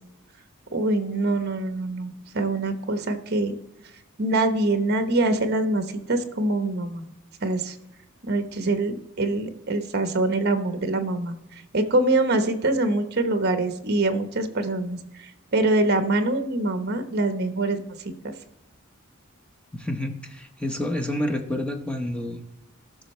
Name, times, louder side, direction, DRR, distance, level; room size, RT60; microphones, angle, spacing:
voice 1, 0.7-3.6 4.2-7.0 7.4-7.8 8.2-11.4 11.7-18.0 18.2-18.3, right 2 dB, 50° right, 8 dB, 1.0 m, -24 dB
voice 2, 19.7-22.4, left 1 dB, 5° left, 5 dB, 0.9 m, -29 dB
15.5 x 6.2 x 3.2 m, 0.89 s
head